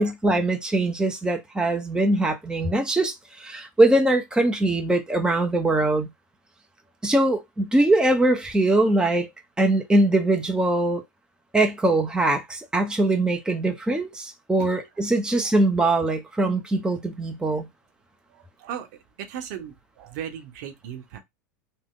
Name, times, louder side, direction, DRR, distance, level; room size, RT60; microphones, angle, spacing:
voice 1, 0.0-6.1 7.0-9.3 9.6-11.0 11.5-17.7, right 2 dB, 10° right, 0.8 m, -22 dB
voice 2, 18.3-18.9 19.2-21.2, right 9 dB, 65° right, 1.0 m, -37 dB
3.3 x 2.2 x 3.7 m
hypercardioid pair, 95°, 10 cm